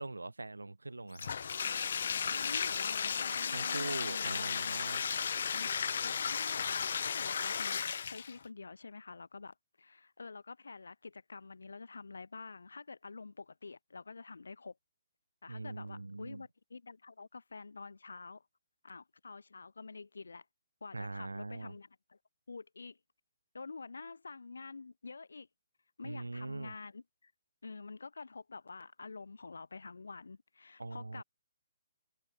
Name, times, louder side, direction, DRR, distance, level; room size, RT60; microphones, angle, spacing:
voice 1, 0.0-1.3 3.5-5.0 5.8-5.9 15.5-16.4 20.9-21.7 26.0-26.7 30.8-31.2, right 2 dB, 90° right, 0.8 m, -42 dB
Bathtub (filling or washing), 1.2-8.4, left 7 dB, 60° left, 1.0 m, -34 dB
voice 2, 2.3-4.7 5.0-5.2 5.5-7.8 8.1-14.7 15.4-18.4 18.8-20.4 20.8-22.2 22.5-23.0 23.5-25.5 26.0-27.3 27.6-31.2, left 4 dB, 80° left, 4.2 m, -48 dB
figure-of-eight pair, 135°, 0 cm